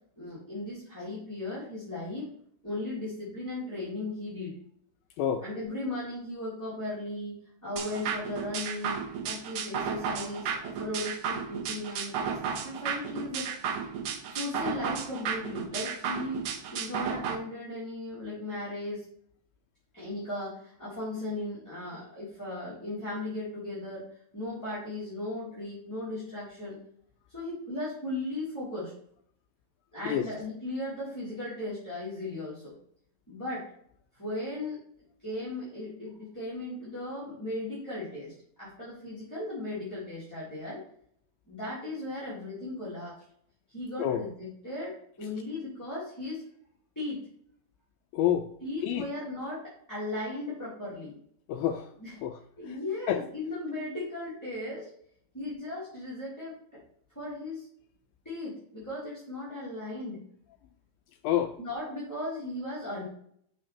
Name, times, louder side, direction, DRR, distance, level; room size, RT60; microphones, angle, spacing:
voice 1, 0.2-2.3 2.6-4.5 5.4-12.1 12.4-13.5 14.3-19.0 19.9-24.0 24.3-26.8 27.3-28.9 29.9-32.7 33.3-33.6 34.1-34.8 35.2-40.8 41.5-43.1 43.7-46.4 46.9-47.2 48.6-49.6 49.9-51.1 52.0-52.1 52.6-54.9 55.3-56.8 57.1-57.7 58.2-60.2 61.6-63.0, left 2 dB, 5° left, -10 dB, 2.8 m, -37 dB
sound 1, 7.8-17.4, right 6 dB, 80° right, 1.7 m, -33 dB
voice 2, 48.1-48.5 48.8-49.1 51.5-51.9 52.2-52.4 53.1-53.2 61.2-61.6, left 10 dB, 85° left, 7 dB, 2.1 m, -27 dB
6.6 x 5.9 x 4.3 m, 0.66 s
omnidirectional pair, 4.5 m